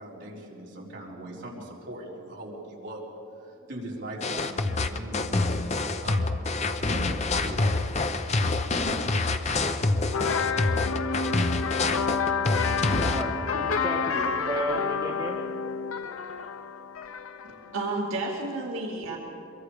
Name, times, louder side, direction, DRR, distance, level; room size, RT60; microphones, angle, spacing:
voice 1, 0.0-5.5 6.0-6.3 6.7-7.0 7.4-7.7, right 1 dB, 55° right, -4 dB, 4.3 m, -40 dB
sound 1, 4.2-13.2, left 2 dB, 30° left, 0.7 m, -26 dB
sound 2, 10.1-17.8, left 5 dB, 80° left, 0.7 m, -29 dB
voice 2, 13.0-15.4, right 1 dB, 20° right, -4 dB, 1.9 m, -33 dB
voice 3, 17.6-19.2, right 2 dB, 70° right, -2 dB, 2.4 m, -31 dB
24.5 x 23.0 x 5.0 m, 2.8 s
head